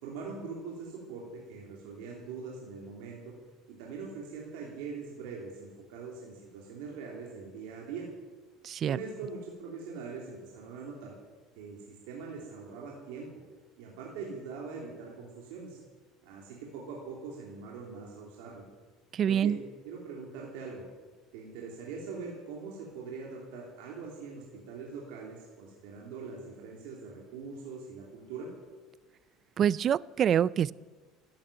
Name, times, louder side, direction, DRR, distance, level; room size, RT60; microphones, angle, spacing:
voice 1, 0.0-3.3 3.7-8.1 8.9-11.1 11.6-13.3 13.8-15.8 16.2-18.6 19.2-19.6 19.8-20.8 21.3-28.5, right 5 dB, 85° right, -2 dB, 3.1 m, -42 dB
voice 2, 8.6-9.0 19.1-19.6 29.6-30.7, right 9 dB, 40° right, 22 dB, 0.4 m, -26 dB
13.0 x 10.5 x 9.1 m, 1.4 s
supercardioid pair, 120°, 0 cm